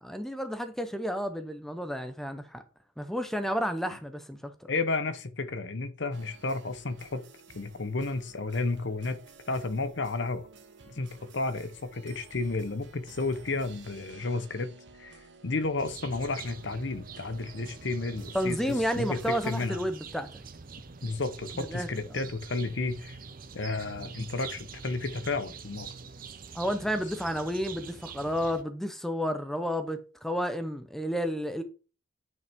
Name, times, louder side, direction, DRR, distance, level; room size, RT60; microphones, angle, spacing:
voice 1, 0.0-2.6 3.0-4.7 18.3-20.4 21.6-21.9 26.5-31.6, equal, ahead, 0.7 m, -31 dB
voice 2, 4.7-7.3 7.5-9.2 9.5-10.5 10.9-14.7 15.0-19.8 21.0-23.2 23.5-25.9, left 3 dB, 60° left, 0.9 m, -32 dB
sound 1, 6.1-19.7, right 3 dB, 60° right, 1.4 m, -53 dB
sound 2, 15.8-28.6, right 5 dB, 45° right, 0.7 m, -45 dB
9.3 x 5.5 x 3.6 m
head